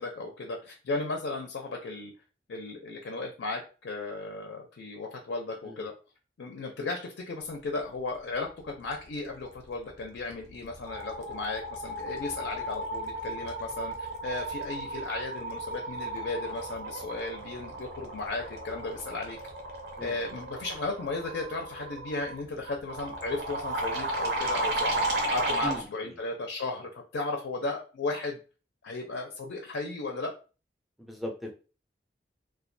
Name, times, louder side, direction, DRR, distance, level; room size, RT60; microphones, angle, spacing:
voice 1, 0.0-2.1 2.5-5.9 6.4-19.4 20.0-25.0 25.3-28.4 28.8-30.3, left 3 dB, 85° left, 2 dB, 0.4 m, -35 dB
sound 1, 10.0-10.3 10.6-25.8, right 1 dB, 65° right, 0.6 m, -34 dB
voice 2, 20.0-20.3 25.6-26.1 31.0-31.5, equal, ahead, 1 dB, 0.4 m, -38 dB
2.2 x 2.1 x 2.5 m, 0.34 s
head